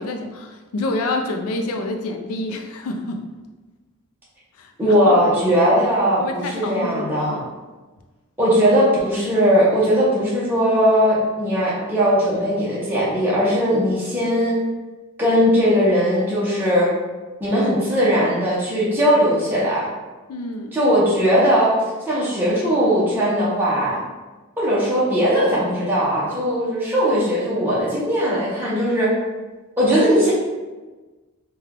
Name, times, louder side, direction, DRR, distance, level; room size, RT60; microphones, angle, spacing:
voice 1, 0.0-3.3 4.6-5.1 6.2-7.4 20.3-20.7, left 2 dB, 90° left, 4 dB, 0.4 m, -28 dB
voice 2, 4.8-7.5 8.4-14.6 15.2-16.9 17.4-19.9 20.7-21.7 22.0-24.0 24.6-29.1 29.8-30.3, equal, 10° right, -9 dB, 0.7 m, -19 dB
3.2 x 2.2 x 3.6 m, 1.2 s
head